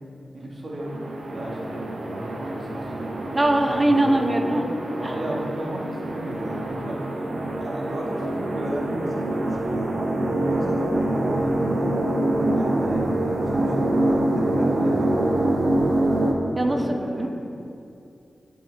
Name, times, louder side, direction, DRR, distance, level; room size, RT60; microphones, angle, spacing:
voice 1, 0.3-1.0 1.3-3.1 3.6-4.7 5.0-7.3 7.6-9.9 10.2-11.9 12.5-15.2 16.0-16.2 16.6-17.3, right 1 dB, 55° right, -4 dB, 1.4 m, -34 dB
sound 1, 0.8-16.3, right 1 dB, 75° right, 0.7 m, -25 dB
voice 2, 3.3-4.7 16.6-16.8 17.2-17.3, right 1 dB, 25° right, 4 dB, 0.6 m, -20 dB
6.7 x 5.3 x 3.9 m, 2.6 s
wide cardioid pair, 75°, 0 cm